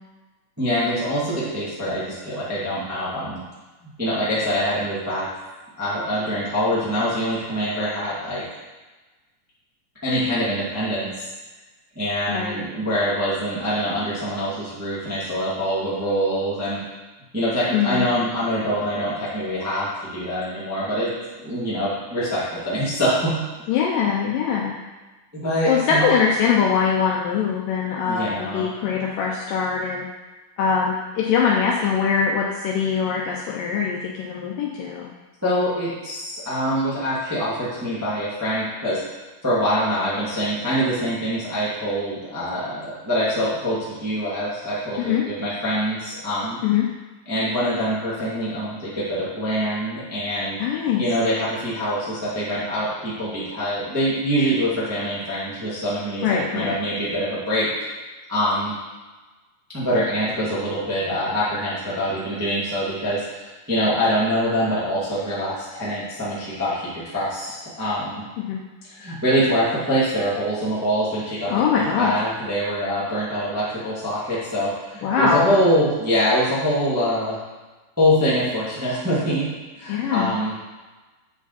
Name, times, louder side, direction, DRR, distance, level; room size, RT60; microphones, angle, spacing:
voice 1, 0.6-3.4 4.0-5.3 5.8-8.4 10.0-11.3 11.9-16.8 17.3-21.1 21.4-23.4 24.0-24.1 25.3-26.0 28.1-28.7 35.4-39.0 39.4-46.6 47.2-50.6 51.0-57.7 58.3-58.7 59.7-68.2 68.9-77.4 78.0-79.5 79.7-80.5, equal, 10° right, -9 dB, 0.9 m, -24 dB
voice 2, 12.3-12.6 17.7-18.1 23.7-24.8 25.7-30.1 30.6-35.1 45.0-45.2 46.6-46.9 50.6-51.0 56.2-56.7 68.5-68.6 71.5-72.2 75.0-75.5 79.9-80.3, left 6 dB, 80° left, -2 dB, 2.0 m, -22 dB
8.2 x 4.9 x 4.1 m, 1.2 s
omnidirectional pair, 4.5 m